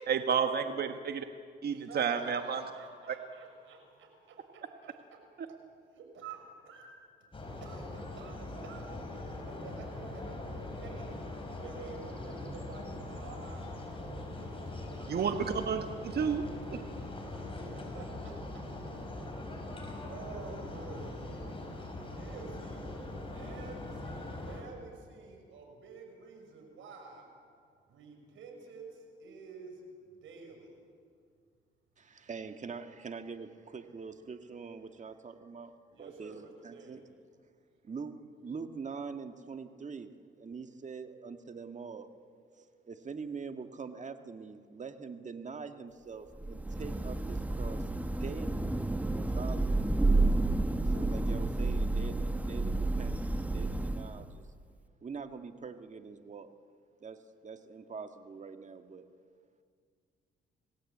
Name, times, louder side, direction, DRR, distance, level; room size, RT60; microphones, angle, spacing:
voice 1, 0.1-1.3 1.6-2.6 3.1-3.2 15.1-16.8, right 6 dB, 55° right, 6 dB, 1.4 m, -31 dB
voice 2, 1.7-4.9 6.0-6.9 7.6-9.0 9.5-15.2 17.3-17.4 17.7-18.3 20.1-21.2 22.1-22.9 23.2-27.3 27.9-30.8 35.9-37.0, right 4 dB, 80° right, 3 dB, 6.4 m, -50 dB
sound 1, 7.3-24.6, left 2 dB, 25° left, 5.8 m, -41 dB
voice 3, 32.0-37.0 37.8-38.2 38.4-40.1 40.4-42.1 42.6-47.9 48.2-48.8 49.1-49.9 50.8-54.4 55.0-56.5 57.0-57.2 57.4-59.1, right 5 dB, 35° right, 7 dB, 1.9 m, -44 dB
Thunder / Rain, 46.4-54.4, right 2 dB, 5° right, 1.2 m, -30 dB
27.0 x 18.5 x 8.6 m, 2.1 s
cardioid pair, 90°, 20 cm